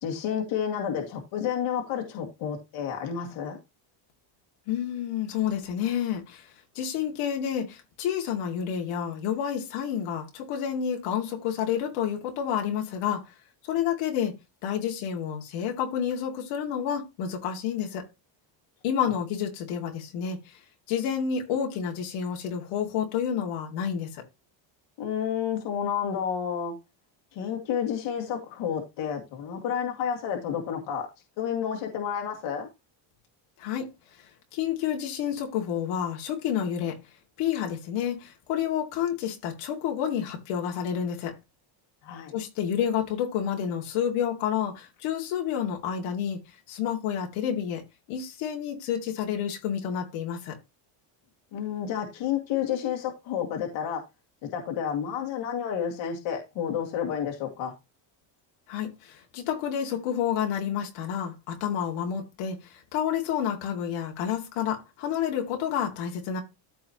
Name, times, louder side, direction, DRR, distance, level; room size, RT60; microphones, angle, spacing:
voice 1, 0.0-3.6 25.0-26.7 27.3-31.1 31.4-32.7 42.0-42.4 51.5-54.0 54.4-57.7, left 8 dB, 65° left, 2.3 m, -30 dB
voice 2, 4.7-6.5 6.7-13.2 13.7-14.3 14.6-18.0 18.8-20.6 20.9-24.2 33.6-33.9 34.2-34.3 34.5-37.0 37.4-41.3 42.3-46.4 46.7-47.8 48.1-50.6 58.7-66.4, left 8 dB, 90° left, 2.6 m, -29 dB
14.0 x 4.7 x 3.0 m
cardioid pair, 165°, 50 cm